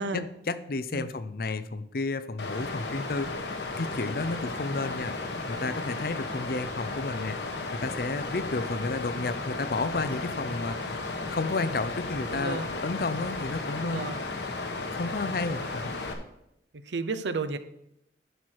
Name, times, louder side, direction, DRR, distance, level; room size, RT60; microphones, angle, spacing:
voice 1, 0.0-5.1 5.5-14.1 14.8-15.9, left 3 dB, 55° left, 13 dB, 0.6 m, -32 dB
Water, 2.4-16.1, left 3 dB, 75° left, 1.3 m, -34 dB
voice 2, 12.3-12.7 13.9-14.2 16.7-17.6, right 3 dB, 85° right, 12 dB, 0.7 m, -32 dB
11.0 x 4.6 x 6.4 m, 0.79 s
head